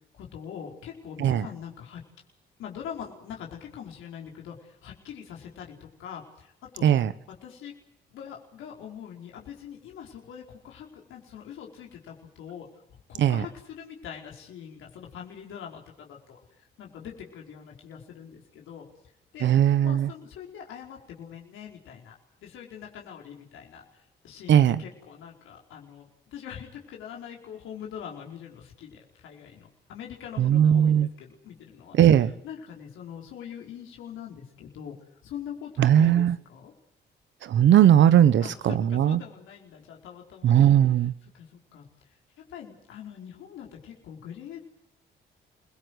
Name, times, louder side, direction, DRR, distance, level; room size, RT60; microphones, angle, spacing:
voice 1, 0.2-2.0 2.6-6.9 7.4-7.7 8.1-12.7 13.1-18.8 19.3-19.5 19.8-22.1 22.4-23.8 24.2-35.0 35.2-36.7 38.4-40.6 40.8-41.1 41.3-41.8 42.5-44.6, left 8 dB, 85° left, 0 dB, 4.8 m, -43 dB
voice 2, 19.4-20.1 24.5-24.8 30.4-31.1 32.0-32.3 35.8-36.4 37.5-39.2 40.4-41.1, right 10 dB, 70° right, 15 dB, 1.1 m, -19 dB
28.0 x 18.0 x 8.0 m, 0.75 s
cardioid pair, 90°, 20 cm